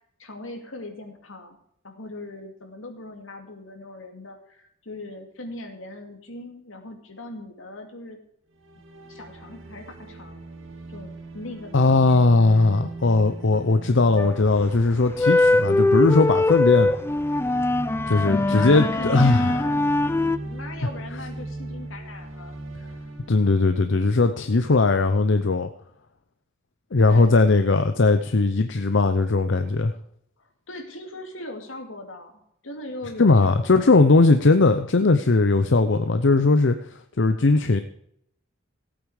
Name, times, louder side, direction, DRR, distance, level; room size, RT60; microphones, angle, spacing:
voice 1, 0.2-1.6 1.8-8.2 9.1-10.4 10.9-12.2 18.1-22.6 27.1-27.4 30.4-34.4, left 1 dB, 85° left, 5 dB, 2.4 m, -39 dB
sound 1, 8.6-24.7, right 2 dB, 85° right, 2.0 m, -39 dB
voice 2, 11.7-16.9 18.1-19.6 23.3-25.7 26.9-29.9 33.2-36.8 37.2-37.8, left 3 dB, 65° left, 8 dB, 0.7 m, -19 dB
sound 2, 14.2-14.6 15.1-20.4, left 2 dB, 10° left, 0.4 m, -22 dB
16.0 x 8.8 x 4.9 m, 0.71 s
head